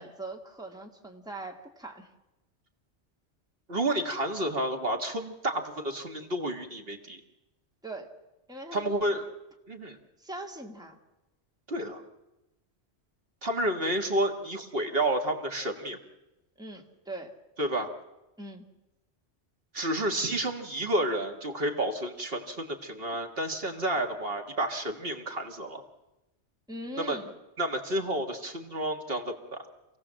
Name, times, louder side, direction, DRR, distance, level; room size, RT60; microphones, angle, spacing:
voice 1, 0.0-2.1 7.8-8.1 8.5-8.9 10.2-11.0 16.6-17.3 18.4-18.6 26.7-27.3, right 1 dB, 5° right, 2 dB, 1.9 m, -41 dB
voice 2, 3.7-7.2 8.7-9.3 9.7-10.0 11.7-12.0 13.4-16.0 17.6-17.9 19.7-25.8 27.0-27.2 27.6-29.6, right 1 dB, 55° right, 4 dB, 2.0 m, -30 dB
27.5 x 17.0 x 7.5 m, 0.98 s
omnidirectional pair, 1.2 m